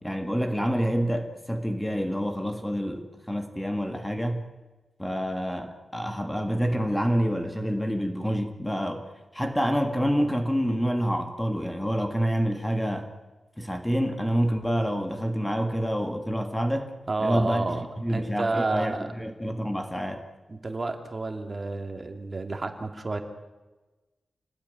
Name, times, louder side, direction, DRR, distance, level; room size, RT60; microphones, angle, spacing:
voice 1, 0.0-4.5 5.0-13.1 13.6-16.9 17.2-20.3, equal, 5° left, 5 dB, 1.8 m, -27 dB
voice 2, 17.1-17.8 18.1-19.1 20.5-23.2, right 3 dB, 30° right, 5 dB, 2.6 m, -30 dB
27.5 x 19.5 x 9.5 m, 1.2 s
wide cardioid pair, 130°, 0 cm